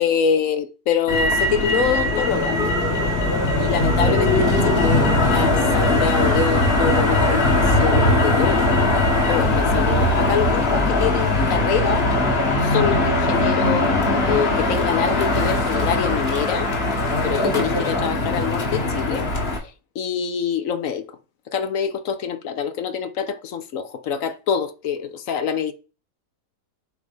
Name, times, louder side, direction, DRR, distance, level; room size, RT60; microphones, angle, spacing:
voice 1, 0.0-2.6 3.6-8.7 9.2-12.1 12.6-13.9 14.3-16.7 17.2-19.3 19.6-21.1 21.5-25.7, left 7 dB, 60° left, 1.0 m, -25 dB
Motor vehicle (road), 1.1-19.6, left 2 dB, 40° left, 1.6 m, -20 dB
sound 1, 2.3-6.5, left 3 dB, 75° left, 3.4 m, -36 dB
8.2 x 3.3 x 5.3 m
omnidirectional pair, 1.7 m